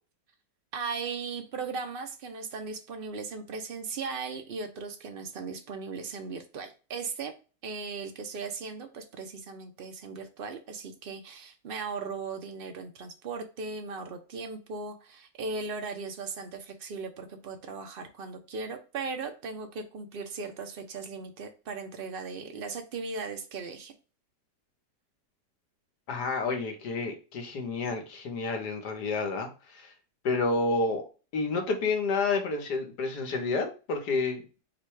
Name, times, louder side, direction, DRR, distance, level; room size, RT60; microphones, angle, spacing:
voice 1, 0.7-7.3 7.6-23.9, right 4 dB, 75° right, 6 dB, 0.5 m, -37 dB
voice 2, 26.1-29.9 30.2-31.0 31.3-34.4, left 3 dB, 75° left, 4 dB, 1.5 m, -29 dB
4.9 x 2.2 x 4.6 m, 0.34 s
omnidirectional pair, 1.8 m